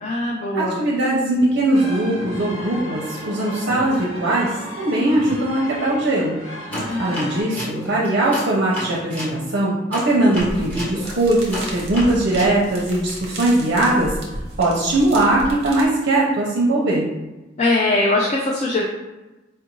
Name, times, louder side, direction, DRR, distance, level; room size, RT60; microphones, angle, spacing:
voice 1, 0.0-0.7 6.9-7.3 17.6-18.8, left 2 dB, 35° left, -2 dB, 0.4 m, -21 dB
voice 2, 0.5-4.5 4.8-6.7 7.0-14.2 14.6-17.1, right 1 dB, 60° right, -4 dB, 0.6 m, -20 dB
sound 1, 1.7-7.4, equal, 85° left, 1.1 m, -34 dB
sound 2, 6.7-9.4 9.9-12.6, equal, 10° left, 1.0 m, -31 dB
sound 3, 10.4-15.9, right 1 dB, 35° right, 0.9 m, -34 dB
4.5 x 2.5 x 3.0 m, 1.1 s
head